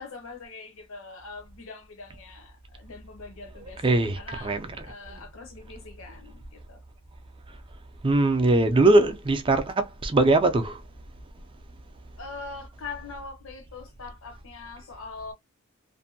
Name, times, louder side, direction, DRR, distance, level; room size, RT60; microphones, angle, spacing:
voice 1, 0.0-3.8 4.2-6.8 12.2-15.3, left 4 dB, 65° left, 0.7 m, -42 dB
voice 2, 3.6-5.2 8.0-10.8, right 2 dB, 25° right, 0.4 m, -22 dB
2.6 x 2.1 x 2.6 m
head